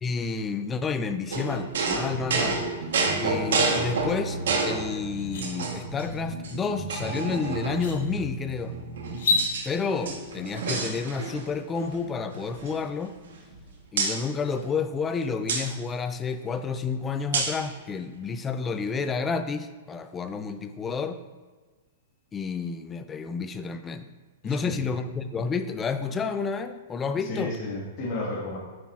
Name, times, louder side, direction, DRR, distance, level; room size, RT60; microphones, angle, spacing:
voice 1, 0.0-2.6 3.2-8.8 9.7-13.2 13.9-21.2 22.3-24.1 24.4-27.5, left 5 dB, 15° left, 9 dB, 0.4 m, -30 dB
sound 1, 1.3-4.9 5.4-6.0 6.4-6.5 6.9-7.9 8.7-9.7 9.9-11.5 11.8-12.0 12.3-13.6 14.0-14.2 15.5-15.7 17.3-17.7, right 4 dB, 80° right, 1.1 m, -28 dB
sound 2, 2.1-9.5, right 2 dB, 60° right, 0.8 m, -37 dB
sound 3, 4.5-4.6 5.0-5.4 7.1-7.2 7.7-8.0 9.1-9.4, left 3 dB, 70° left, 1.4 m, -27 dB
voice 2, 24.4-24.9 27.2-28.6, left 2 dB, 40° left, -5 dB, 1.7 m, -33 dB
7.6 x 5.8 x 2.4 m, 1.3 s
hypercardioid pair, 140°, 0 cm